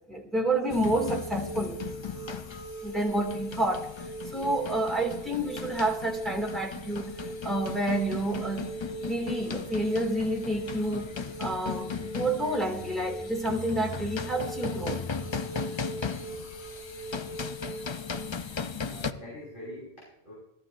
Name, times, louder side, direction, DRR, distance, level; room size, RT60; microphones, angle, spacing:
voice 1, 0.1-1.8 2.8-3.9 4.3-7.1 7.4-8.7 9.0-11.1 11.4-15.1, right 1 dB, ahead, -1 dB, 2.2 m, -29 dB
sound 1, 0.6-18.3, right 2 dB, 80° left, 3.9 m, -41 dB
sound 2, 0.7-19.1, left 6 dB, 40° left, 0.4 m, -37 dB
voice 2, 16.2-16.6 17.8-17.9 18.9-20.3, left 1 dB, 55° left, -6 dB, 5.4 m, -45 dB
18.0 x 14.0 x 2.5 m, 0.88 s
omnidirectional pair, 1.1 m